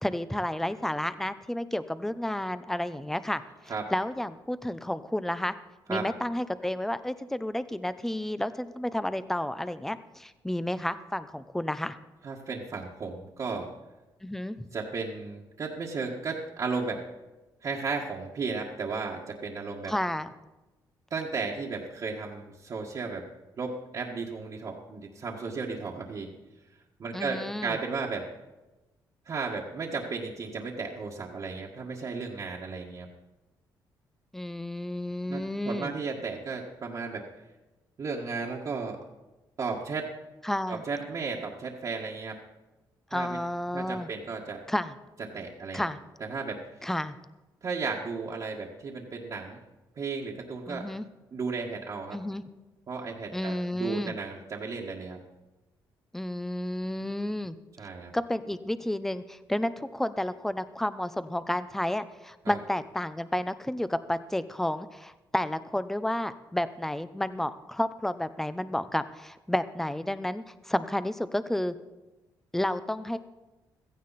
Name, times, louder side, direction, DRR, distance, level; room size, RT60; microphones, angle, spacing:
voice 1, 0.0-3.4 3.9-5.5 5.9-12.0 14.2-14.6 19.9-20.3 27.1-27.8 34.3-35.9 40.4-40.8 43.1-44.1 44.7-44.9 45.7-46.0 46.8-47.2 50.7-51.1 52.1-52.4 53.3-54.1 56.1-57.6 58.1-71.7 72.5-73.2, left 1 dB, 5° left, 13 dB, 0.7 m, -31 dB
voice 2, 12.2-13.7 14.7-17.0 17.6-19.9 21.1-23.2 23.6-26.3 27.0-28.3 29.2-33.1 35.3-37.2 38.0-39.0 39.6-40.1 40.7-42.4 43.1-43.4 43.7-44.6 45.3-45.8 46.3-46.6 47.6-49.6 49.9-50.9 51.3-52.2 52.9-55.2 57.8-58.1 62.4-62.6, right 4 dB, 45° right, -3 dB, 1.7 m, -34 dB
16.0 x 14.5 x 4.2 m, 1.1 s
cardioid pair, 110°, 8 cm